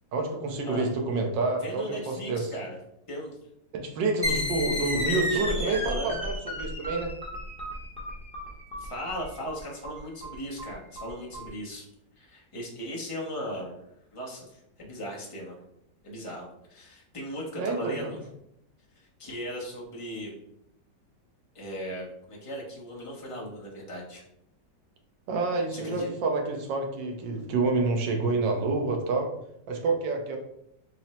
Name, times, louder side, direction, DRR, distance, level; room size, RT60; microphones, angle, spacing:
voice 1, 0.1-2.4 3.7-7.1 17.6-18.1 25.3-29.3 29.7-30.4, right 3 dB, 90° right, 3 dB, 1.4 m, -28 dB
voice 2, 1.6-2.8 3.1-3.4 5.1-6.2 8.8-11.8 12.2-13.8 14.1-15.6 16.0-18.2 18.9-20.4 21.5-24.2 25.7-26.1, equal, 60° left, -3 dB, 0.3 m, -37 dB
sound 1, 4.2-11.5, left 1 dB, 5° left, 0.5 m, -33 dB
4.3 x 2.0 x 4.1 m, 0.77 s
omnidirectional pair, 1.9 m